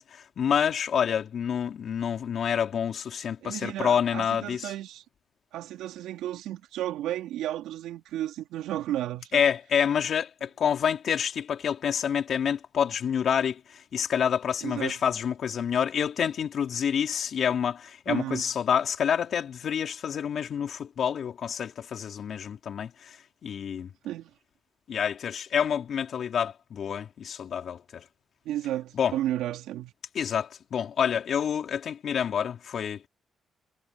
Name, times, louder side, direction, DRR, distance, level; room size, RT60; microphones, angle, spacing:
voice 1, 0.0-4.7 9.3-23.2 23.4-23.9 24.9-28.0 29.0-29.1 30.1-33.1, left 8 dB, 60° left, 3.8 m, -28 dB
voice 2, 3.4-5.0 5.5-9.4 14.6-15.0 18.1-18.5 24.0-24.3 28.5-29.9, right 13 dB, 90° right, 3.5 m, -33 dB
cardioid pair, 90°, 0 cm